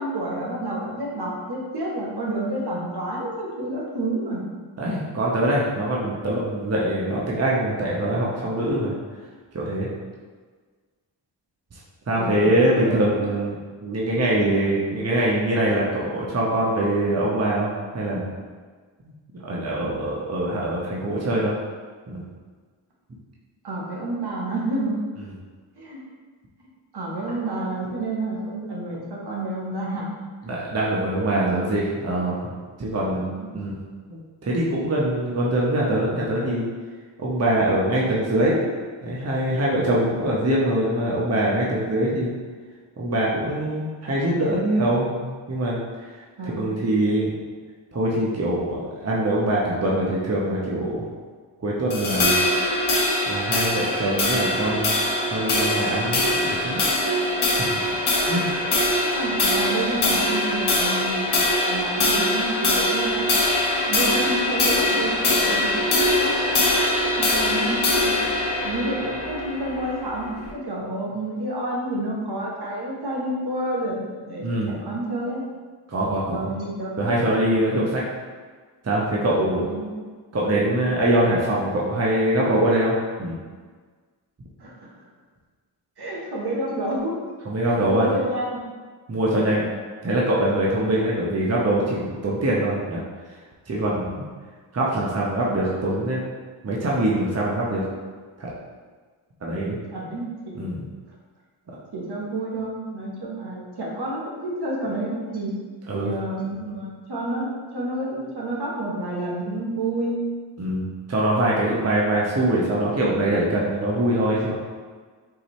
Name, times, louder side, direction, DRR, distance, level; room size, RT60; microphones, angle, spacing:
voice 1, 0.0-4.4 6.2-6.5 12.2-12.5 12.8-13.2 23.6-24.9 25.7-26.0 26.9-30.1 31.3-31.7 33.1-33.6 46.4-46.8 59.0-63.3 63.8-66.6 67.1-68.2 68.6-75.5 76.3-77.1 77.5-77.9 79.6-80.0 84.6-85.1 86.0-87.1 87.7-88.6 89.3-89.6 99.9-100.6 101.9-110.2, right 1 dB, 55° right, -3 dB, 1.1 m, -29 dB
voice 2, 4.8-8.9 9.5-9.9 12.1-13.6 13.8-18.3 19.3-21.5 22.1-22.2 30.5-32.5 32.8-33.3 33.5-33.8 34.1-36.6 37.2-38.6 39.0-42.3 43.0-45.8 46.4-47.3 47.9-51.1 51.6-52.4 53.3-55.0 55.3-56.8 57.6-57.8 58.3-58.5 74.4-74.8 75.9-76.5 77.0-78.0 78.8-79.7 80.3-83.4 87.5-88.1 89.1-89.6 90.0-93.0 93.7-94.2 94.7-96.2 96.6-97.8 98.4-98.5 99.4-99.8 100.5-100.9 105.9-106.1 110.6-114.5, right 1 dB, 30° right, -5 dB, 0.9 m, -23 dB
sound 1, 51.9-70.5, left 1 dB, 55° left, 1.0 m, -22 dB
4.7 x 2.7 x 3.0 m, 1.5 s
cardioid pair, 45°, 48 cm